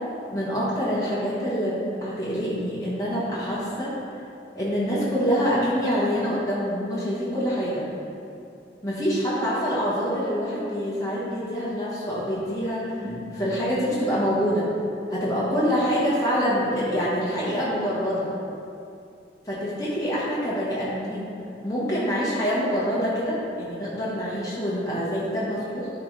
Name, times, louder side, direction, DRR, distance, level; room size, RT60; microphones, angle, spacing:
voice 1, 0.3-3.9 4.5-7.9 8.8-14.7 15.1-18.3 19.4-21.3 21.6-25.9, equal, 20° left, -8 dB, 1.1 m, -26 dB
10.5 x 3.8 x 3.2 m, 2.6 s
head